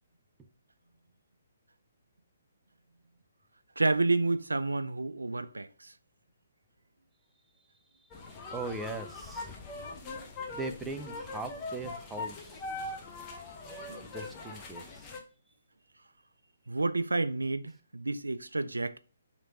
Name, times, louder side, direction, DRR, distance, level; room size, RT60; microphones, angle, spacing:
voice 1, 3.8-5.9 13.9-14.0 16.7-19.0, right 3 dB, 85° right, 0.3 m, -30 dB
sound 1, 8.1-15.2, left 3 dB, 20° left, 0.8 m, -41 dB
voice 2, 8.5-9.5 10.5-12.6 14.0-15.1, right 3 dB, 10° right, 0.5 m, -40 dB
3.1 x 2.9 x 4.6 m
figure-of-eight pair, 135°, 0 cm